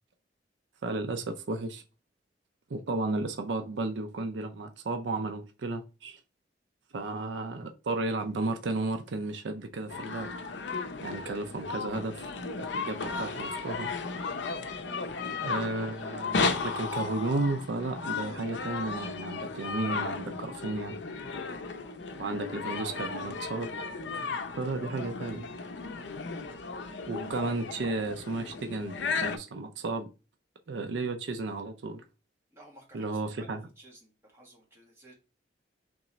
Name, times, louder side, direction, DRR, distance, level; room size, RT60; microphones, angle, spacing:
voice 1, 0.8-1.8 2.7-6.2 6.9-10.3 11.0-12.3 12.6-13.9 15.4-21.0 22.2-23.7 24.5-25.5 27.1-30.1 30.7-32.0 32.9-33.6, right 3 dB, 85° right, 0.5 m, -33 dB
sound 1, 9.9-29.4, left 4 dB, 80° left, 0.5 m, -35 dB
voice 2, 32.5-35.1, right 1 dB, 15° right, 1.4 m, -55 dB
3.7 x 3.0 x 4.1 m
head